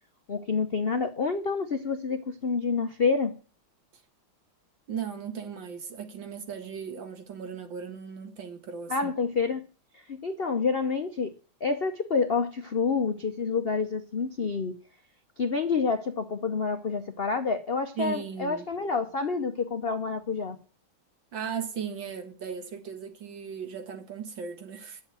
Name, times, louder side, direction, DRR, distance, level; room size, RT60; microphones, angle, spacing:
voice 1, 0.3-3.4 8.9-9.7 9.9-11.4 11.6-14.7 15.4-20.6, left 4 dB, 55° left, 0.6 m, -28 dB
voice 2, 4.9-9.1 18.0-18.7 21.3-25.0, right 7 dB, 60° right, 2.3 m, -37 dB
11.0 x 7.1 x 9.0 m
omnidirectional pair, 2.3 m